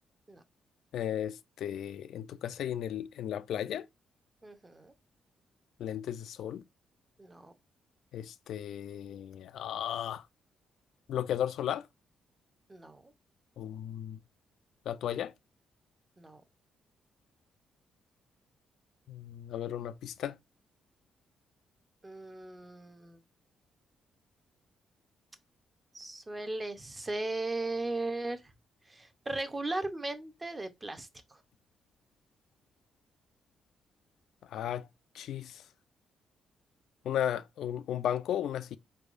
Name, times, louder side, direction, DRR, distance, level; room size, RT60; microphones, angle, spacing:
voice 1, 0.9-3.8 5.8-6.6 8.1-10.2 11.1-11.9 13.6-14.2 14.9-15.3 19.1-20.3 34.5-34.9 35.1-35.6 37.1-38.8, left 10 dB, 80° left, 0.3 m, -35 dB
voice 2, 4.4-4.9 7.2-7.5 12.7-13.1 16.2-16.4 22.0-23.2 25.9-28.4 28.9-31.4, right 2 dB, 20° right, 0.6 m, -37 dB
4.4 x 3.4 x 2.4 m
cardioid pair, 130°, 0 cm